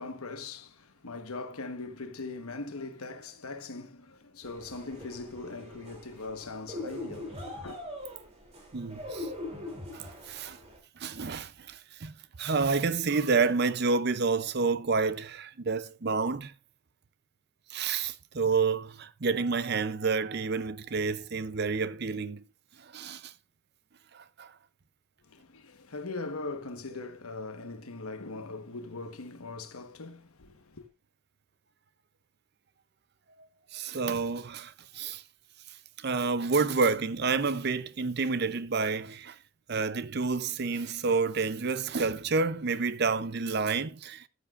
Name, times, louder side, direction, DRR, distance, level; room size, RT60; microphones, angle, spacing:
voice 1, 0.0-7.8 25.2-30.9, left 3 dB, 85° left, 1.2 m, -40 dB
sound 1, 4.4-10.8, left 1 dB, 30° right, 3.0 m, -42 dB
voice 2, 8.7-9.3 9.9-10.6 11.0-16.5 17.7-22.4 22.8-23.3 24.1-24.5 27.0-27.1 33.7-35.2 36.0-39.4 39.7-44.3, right 4 dB, 50° right, 0.6 m, -29 dB
13.5 x 8.5 x 2.5 m
head